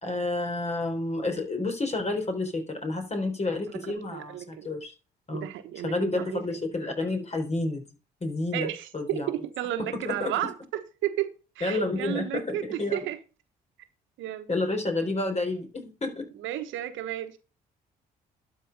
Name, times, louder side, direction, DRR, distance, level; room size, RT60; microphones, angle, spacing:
voice 1, 0.0-4.9 5.3-5.5 5.8-7.8 8.2-9.3 9.8-10.3 11.6-13.0 14.5-16.3, left 2 dB, 30° left, 3.9 m, -30 dB
voice 2, 3.7-4.7 5.3-6.4 8.5-11.3 11.6-13.2 14.2-14.5 16.4-17.4, right 12 dB, 70° right, 1.2 m, -33 dB
12.0 x 4.7 x 5.3 m
hypercardioid pair, 55°, 20 cm